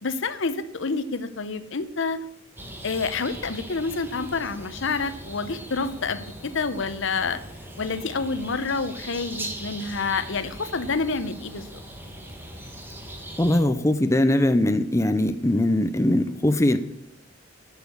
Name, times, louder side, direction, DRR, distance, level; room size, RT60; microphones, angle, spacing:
voice 1, 0.0-2.2 2.8-7.4 7.8-11.6, left 4 dB, 65° left, 13 dB, 0.8 m, -28 dB
sound 1, 2.6-13.6, right 1 dB, 10° right, 1.5 m, -40 dB
voice 2, 13.4-16.8, left 1 dB, 15° left, 9 dB, 0.6 m, -21 dB
12.5 x 6.6 x 7.0 m, 0.80 s
head